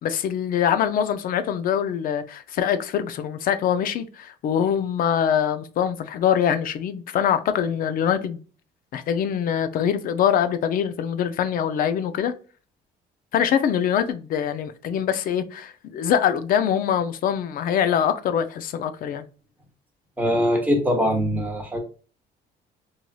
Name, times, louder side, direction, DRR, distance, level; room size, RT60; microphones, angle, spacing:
voice 1, 0.0-8.4 8.9-12.3 13.3-19.2, left 8 dB, 55° left, 0.4 m, -23 dB
voice 2, 20.2-21.8, equal, 10° right, 1.0 m, -22 dB
3.0 x 2.7 x 2.3 m
cardioid pair, 110°, 17 cm